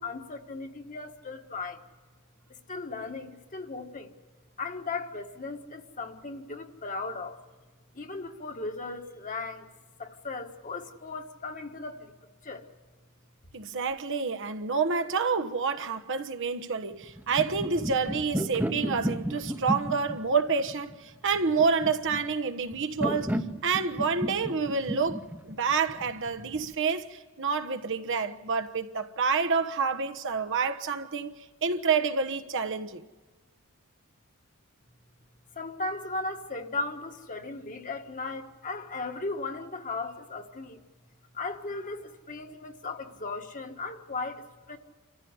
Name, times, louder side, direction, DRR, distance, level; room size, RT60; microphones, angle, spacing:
voice 1, 0.0-1.8 2.5-4.1 4.6-7.4 7.9-9.7 10.0-12.1 12.4-12.7 35.5-40.8 41.3-44.8, left 3 dB, 35° left, 1.6 m, -37 dB
voice 2, 13.5-23.3 23.6-33.0, right 5 dB, 60° right, 1.2 m, -28 dB
sound 1, 17.0-26.7, equal, 10° right, 1.0 m, -34 dB
27.5 x 14.5 x 9.6 m
head